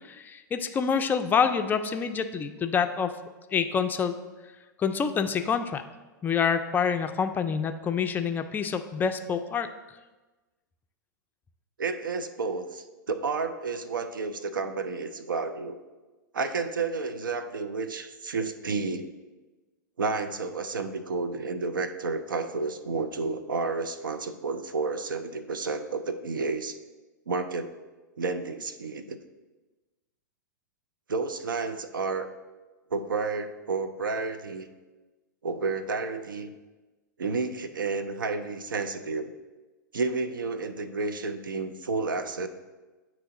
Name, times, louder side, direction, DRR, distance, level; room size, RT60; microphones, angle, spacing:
voice 1, 0.0-3.2 3.5-4.2 4.8-5.8 6.2-10.0, left 6 dB, 15° left, 8 dB, 0.3 m, -27 dB
voice 2, 11.8-15.8 16.3-19.1 20.0-26.8 27.3-27.7 28.2-29.2 31.1-32.4 32.9-34.7 35.4-36.5 37.2-39.3 39.9-42.5, right 4 dB, 85° right, 10 dB, 0.5 m, -31 dB
8.9 x 3.0 x 3.7 m, 1.2 s
hypercardioid pair, 110°, 11 cm